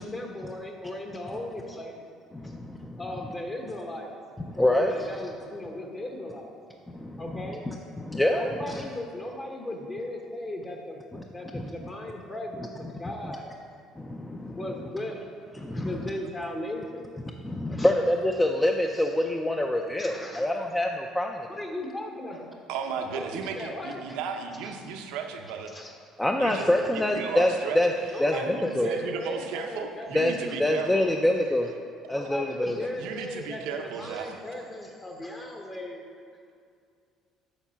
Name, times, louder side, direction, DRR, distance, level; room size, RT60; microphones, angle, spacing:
voice 1, 0.0-2.0 2.4-2.5 3.0-4.1 4.5-6.5 7.2-7.6 8.3-11.0 11.3-13.5 14.5-17.1 17.7-17.9 18.9-19.1 20.0-20.5 21.5-22.5 23.1-24.0 24.6-24.7 25.7-25.9 26.5-26.6 26.9-27.0 28.1-30.1 30.5-31.0 32.1-36.0, left 1 dB, 30° left, 1 dB, 1.1 m, -37 dB
voice 2, 4.6-5.1 7.3-8.8 11.5-11.7 14.1-14.4 15.7-16.0 17.4-21.3 26.2-27.9 28.2-28.9 30.1-31.7 32.1-32.9, left 1 dB, 10° left, 2 dB, 0.5 m, -25 dB
voice 3, 22.7-25.7 26.4-27.8 28.3-31.1 33.0-34.3, right 6 dB, 90° right, 4 dB, 0.8 m, -35 dB
7.2 x 5.4 x 6.9 m, 2.4 s
cardioid pair, 105°, 0 cm